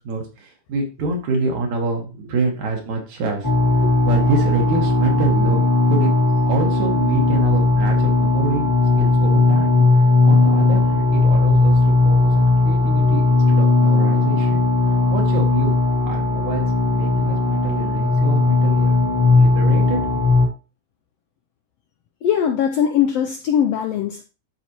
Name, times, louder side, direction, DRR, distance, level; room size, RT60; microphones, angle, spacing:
voice 1, 0.0-3.5 3.8-5.6 5.9-6.1 6.5-14.6 15.1-15.8 16.1-16.7 16.9-18.9 19.4-20.2, right 3 dB, 70° right, 2.9 m, -26 dB
sound 1, 3.4-20.5, left 3 dB, 15° left, 0.6 m, -17 dB
voice 2, 22.2-24.2, left 9 dB, 80° left, 1.4 m, -20 dB
12.0 x 4.2 x 3.0 m
omnidirectional pair, 3.5 m